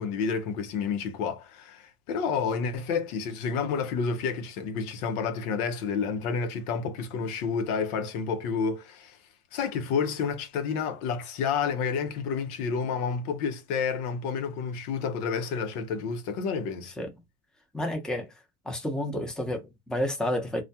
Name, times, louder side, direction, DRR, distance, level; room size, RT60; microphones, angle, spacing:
voice 1, 0.0-9.2 9.5-16.9, left 5 dB, 75° left, 0.8 m, -30 dB
voice 2, 17.7-18.3 18.7-20.6, left 1 dB, ahead, 0.7 m, -30 dB
2.3 x 2.1 x 2.7 m
supercardioid pair, 100°, 44 cm